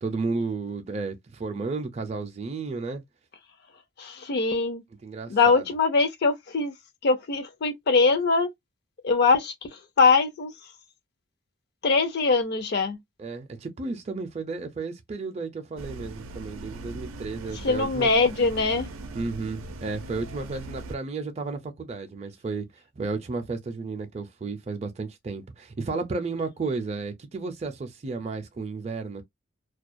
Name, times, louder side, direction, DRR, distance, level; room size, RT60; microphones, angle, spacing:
voice 1, 0.0-3.0 5.0-5.6 13.2-18.1 19.1-22.7 23.0-29.2, right 3 dB, 30° right, 0.4 m, -33 dB
voice 2, 4.0-4.8 5.3-6.7 7.0-8.5 9.0-10.5 11.8-13.0 17.6-18.9, left 4 dB, 55° left, 0.5 m, -22 dB
sound 1, 15.8-21.0, right 2 dB, 90° right, 0.5 m, -40 dB
2.3 x 2.1 x 2.5 m
head